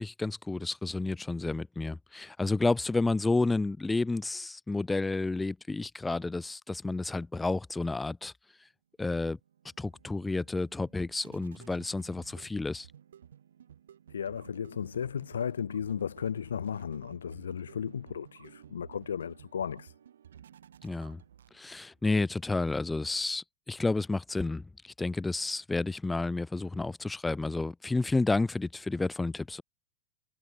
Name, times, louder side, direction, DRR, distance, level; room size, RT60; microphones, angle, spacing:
voice 1, 0.0-8.3 9.0-9.4 9.8-12.9 20.8-21.2 21.5-29.6, left 3 dB, 10° left, 0.5 m, -31 dB
sound 1, 9.4-21.9, right 9 dB, 65° right, 3.4 m, -55 dB
voice 2, 14.1-19.9, left 7 dB, 70° left, 0.8 m, -35 dB
figure-of-eight pair, 90°, 0 cm